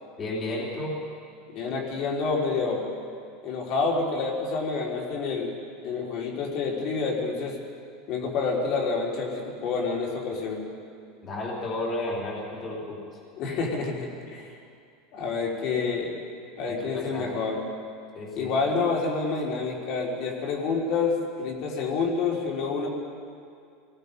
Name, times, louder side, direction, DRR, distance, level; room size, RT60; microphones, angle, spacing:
voice 1, 0.2-0.9 11.2-13.0 16.9-17.3 18.1-18.5, left 2 dB, 20° left, -4 dB, 3.8 m, -32 dB
voice 2, 1.5-2.9 3.4-5.5 5.8-7.6 8.1-10.6 13.3-14.5 15.1-16.1 16.6-17.6 18.4-22.9, left 4 dB, 40° left, -1 dB, 3.9 m, -28 dB
27.5 x 19.5 x 5.3 m, 2.3 s
supercardioid pair, 175°, 0 cm